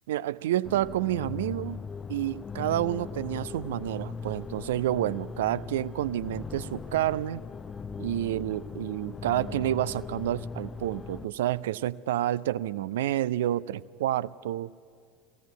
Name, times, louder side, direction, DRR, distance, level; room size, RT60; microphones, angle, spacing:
voice 1, 0.1-1.8 2.1-7.4 8.0-14.7, right 13 dB, 65° right, 0.5 m, -29 dB
sound 1, 0.6-11.3, left 5 dB, 20° left, 0.6 m, -39 dB
21.5 x 16.5 x 9.2 m
figure-of-eight pair, 75°, 0 cm